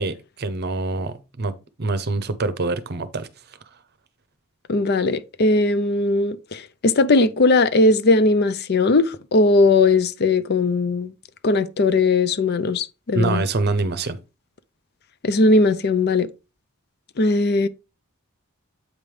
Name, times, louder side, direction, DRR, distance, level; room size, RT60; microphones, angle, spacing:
voice 1, 0.0-3.3 13.1-14.2, right 3 dB, 50° right, 0.7 m, -25 dB
voice 2, 4.7-11.1 11.4-13.4 15.2-16.3 17.2-17.7, left 3 dB, 50° left, 0.5 m, -19 dB
8.1 x 5.3 x 3.3 m
head